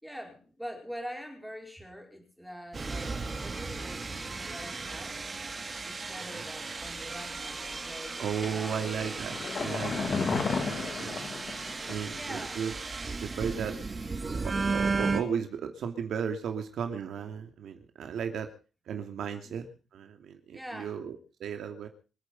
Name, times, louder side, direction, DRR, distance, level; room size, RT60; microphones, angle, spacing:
voice 1, 0.0-5.2 5.9-9.3 12.1-12.6 19.5-19.6 20.5-21.0, equal, ahead, 2 dB, 5.2 m, -44 dB
sound 1, 2.7-15.2, right 4 dB, 25° right, 2.8 m, -35 dB
voice 2, 8.2-10.2 10.5-11.3 11.9-12.7 13.2-13.8 14.4-18.5 18.9-21.9, right 7 dB, 70° right, 5 dB, 2.6 m, -35 dB
sound 2, 8.4-12.1 12.4-12.5, left 4 dB, 40° left, 2.9 m, -33 dB
26.0 x 9.7 x 5.5 m, 0.36 s
wide cardioid pair, 165°, 0 cm